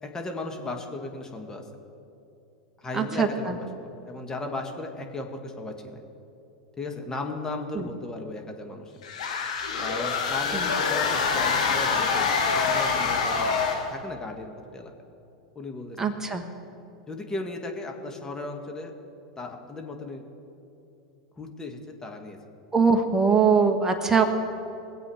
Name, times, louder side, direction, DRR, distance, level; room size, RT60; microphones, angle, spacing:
voice 1, 0.0-1.6 2.8-3.7 4.0-6.0 6.8-8.9 9.8-13.6 13.9-14.9 15.5-16.0 17.1-18.9 19.4-20.2 21.4-22.4, left 2 dB, 15° left, 2 dB, 1.7 m, -36 dB
voice 2, 2.9-3.6 7.7-7.9 10.5-10.7 16.0-16.4 22.7-24.2, right 5 dB, 15° right, 5 dB, 1.4 m, -22 dB
sound 1, 9.0-14.0, left 5 dB, 75° left, 1.8 m, -25 dB
21.5 x 8.1 x 4.9 m, 2.9 s
hypercardioid pair, 90°, 4 cm